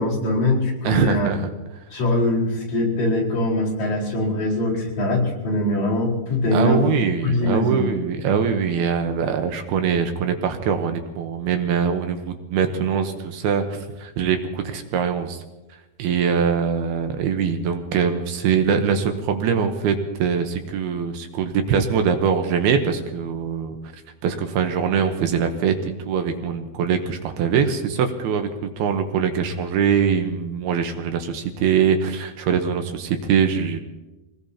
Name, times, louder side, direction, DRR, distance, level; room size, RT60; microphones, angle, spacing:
voice 1, 0.0-1.3 1.9-6.9 7.2-7.9, left 1 dB, 55° left, -4 dB, 6.2 m, -22 dB
voice 2, 0.8-1.5 6.5-15.4 16.0-23.8 24.2-25.8 26.1-28.5 28.8-33.8, right 7 dB, 75° right, 6 dB, 2.9 m, -22 dB
26.0 x 19.5 x 2.9 m, 1.0 s
omnidirectional pair, 4.6 m